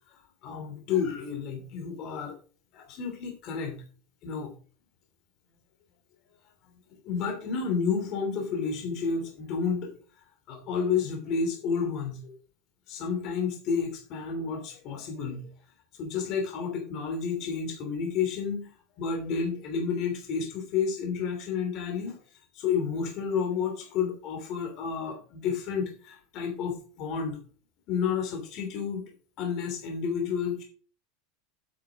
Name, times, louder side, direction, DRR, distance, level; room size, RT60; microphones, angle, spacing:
voice 1, 0.4-2.4 2.7-3.8 4.2-4.5 7.0-9.9 10.5-12.3 12.9-15.5 16.0-18.7 19.0-22.2 22.5-27.4 27.9-29.0 29.4-30.6, left 6 dB, 40° left, 2 dB, 3.0 m, -30 dB
8.5 x 7.4 x 4.9 m, 0.40 s
supercardioid pair, 165°, 0 cm